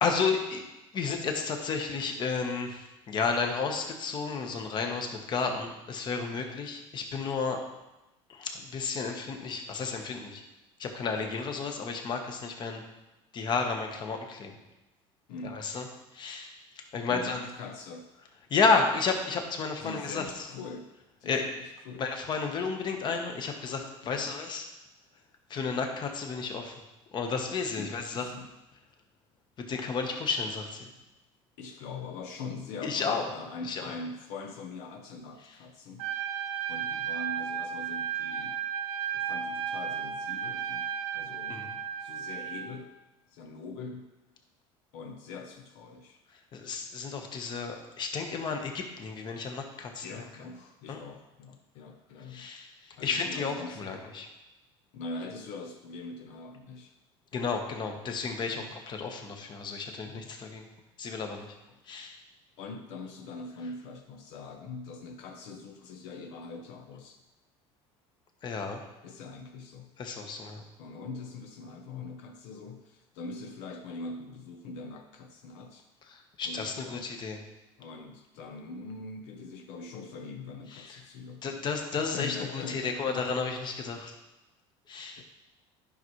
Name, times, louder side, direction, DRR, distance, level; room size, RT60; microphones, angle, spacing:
voice 1, 0.0-0.6 0.9-7.6 8.3-10.4 10.8-12.8 13.3-14.6 15.4-15.8 16.1-17.4 18.5-20.5 21.3-21.5 22.0-24.6 25.5-26.7 27.1-28.3 29.7-30.9 32.8-33.2 33.7-33.9 41.5-41.7 46.5-50.0 50.9-51.0 52.3-54.3 57.3-60.7 61.0-61.5 61.9-62.2 68.4-68.8 70.0-70.6 76.1-77.4 80.7-81.0 81.4-84.2 84.9-85.2, left 4 dB, 40° left, 4 dB, 1.1 m, -32 dB
voice 2, 15.3-15.7 17.1-18.1 19.8-20.9 21.2-22.0 24.0-24.3 27.7-28.5 31.6-36.1 36.7-38.6 39.1-42.9 43.3-44.1 44.9-46.2 50.0-52.5 52.9-53.9 54.9-56.9 58.5-58.7 60.0-60.3 62.6-67.2 69.0-70.0 70.8-75.9 76.4-77.1 77.8-81.7 81.9-83.4 85.2-85.3, left 3 dB, 75° left, 3 dB, 0.8 m, -43 dB
Trumpet, 36.0-42.7, right 8 dB, 65° right, 0.9 m, -34 dB
10.5 x 5.7 x 3.1 m, 1.0 s
cardioid pair, 125°, 12 cm